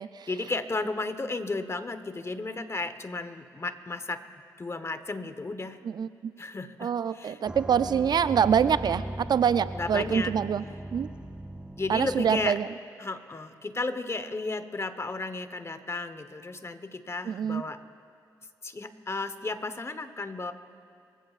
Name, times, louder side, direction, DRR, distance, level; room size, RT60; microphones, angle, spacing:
voice 1, 0.3-4.2 4.6-5.8 6.4-7.4 9.7-10.3 11.8-12.6 13.0-17.8 18.6-20.5, left 3 dB, 35° left, 11 dB, 1.1 m, -34 dB
voice 2, 5.8-6.3 6.8-10.6 10.9-11.1 11.9-12.7 17.3-17.6, right 7 dB, 55° right, 15 dB, 0.4 m, -25 dB
sound 1, 7.5-12.5, right 1 dB, 10° right, 0.6 m, -38 dB
25.0 x 15.5 x 2.5 m, 2.3 s
supercardioid pair, 45°, 8 cm